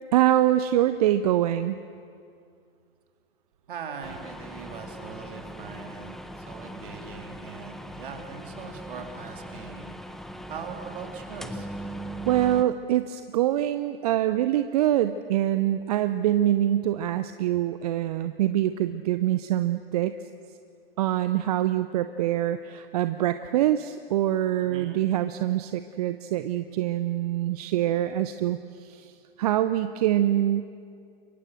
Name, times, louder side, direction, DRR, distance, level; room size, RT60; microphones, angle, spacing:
voice 1, 0.1-1.8 12.3-20.1 21.0-29.1 29.4-30.7, right 12 dB, 40° right, 12 dB, 0.7 m, -24 dB
voice 2, 3.7-11.7 24.7-25.0, right 6 dB, 55° right, 3 dB, 3.6 m, -41 dB
sound 1, 4.0-12.6, right 1 dB, ahead, 0.8 m, -40 dB
29.5 x 23.5 x 6.4 m, 2.3 s
figure-of-eight pair, 110°, 31 cm